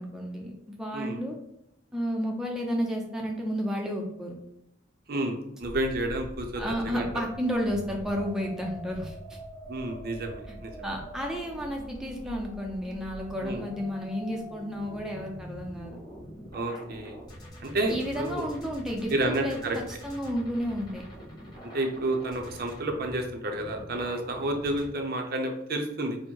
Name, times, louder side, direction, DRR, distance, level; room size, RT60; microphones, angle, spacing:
voice 1, 0.0-1.4 1.9-4.3 6.6-9.4 10.5-10.6 10.8-16.0 17.9-21.0, equal, 5° right, 0 dB, 0.5 m, -32 dB
voice 2, 5.1-7.1 9.7-10.9 13.4-13.6 16.5-17.2 17.6-18.5 19.1-19.8 21.7-26.2, right 1 dB, 50° right, 3 dB, 0.6 m, -30 dB
sound 1, 5.6-24.9, equal, 20° left, 1.2 m, -44 dB
4.3 x 2.1 x 4.5 m, 0.81 s
head